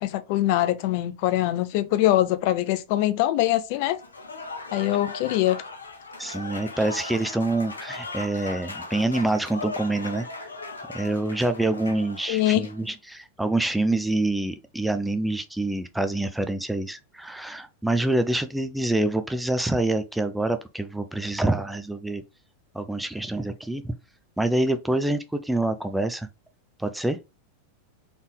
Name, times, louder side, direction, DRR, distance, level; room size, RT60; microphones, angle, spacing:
voice 1, 0.0-4.0 4.7-5.6 12.3-12.7, left 14 dB, 45° left, 0.5 m, -23 dB
Applause / Crowd, 4.0-12.8, left 3 dB, 75° left, 0.8 m, -38 dB
voice 2, 6.2-10.3 10.9-22.2 22.7-23.9 24.4-26.3 26.8-27.2, right 2 dB, 5° right, 0.5 m, -26 dB
4.1 x 3.5 x 3.2 m
figure-of-eight pair, 90°, 0 cm